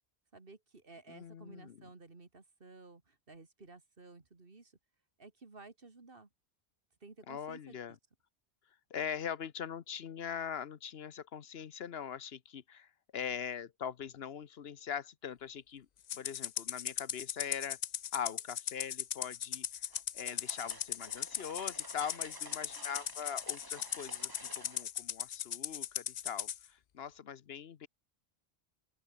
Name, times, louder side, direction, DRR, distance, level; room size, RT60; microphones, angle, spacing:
voice 1, 0.3-4.8 5.2-6.3 7.0-8.0, right 3 dB, 60° right, 2.6 m, -54 dB
voice 2, 1.1-1.8 7.3-7.9 8.9-15.9 16.1-17.8 18.1-19.8 20.1-27.9, left 8 dB, 70° left, 1.1 m, -42 dB
Rattle (instrument), 16.1-26.6, left 9 dB, 55° left, 0.5 m, -38 dB
sound 1, 19.9-24.9, right 2 dB, 20° right, 1.7 m, -51 dB
open air
omnidirectional pair, 1.1 m